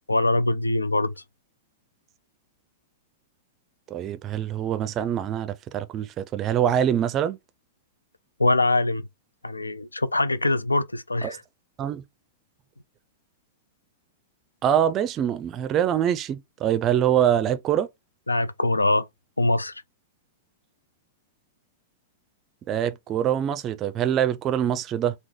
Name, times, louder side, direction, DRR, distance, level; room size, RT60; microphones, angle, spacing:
voice 1, 0.1-1.1 8.4-9.1 9.4-11.4 18.3-19.1 19.4-19.8, left 2 dB, 80° left, 0.3 m, -23 dB
voice 2, 3.9-7.4 11.2-11.4 11.8-12.0 14.6-17.9 22.7-25.1, right 10 dB, 30° right, 0.4 m, -24 dB
4.5 x 2.0 x 3.7 m
figure-of-eight pair, 100°, 0 cm